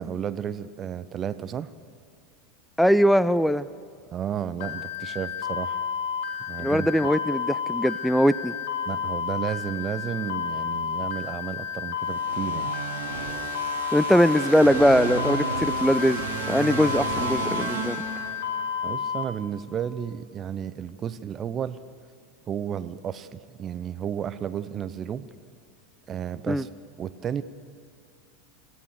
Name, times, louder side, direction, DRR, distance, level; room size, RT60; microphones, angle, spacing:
voice 1, 0.0-1.7 4.1-5.8 6.5-6.9 8.9-12.7 18.8-21.8 22.5-25.3 26.1-26.7 27.0-27.4, right 9 dB, 30° right, 14 dB, 0.8 m, -32 dB
voice 2, 2.8-3.7 6.6-8.5 13.9-18.0 26.5-26.6, equal, ahead, 16 dB, 0.5 m, -21 dB
sound 1, 4.6-19.2, left 7 dB, 55° left, 3.0 m, -31 dB
sound 2, 12.1-18.7, right 6 dB, 65° right, 2.6 m, -33 dB
26.0 x 15.5 x 6.6 m, 2.3 s
figure-of-eight pair, 85°, 0 cm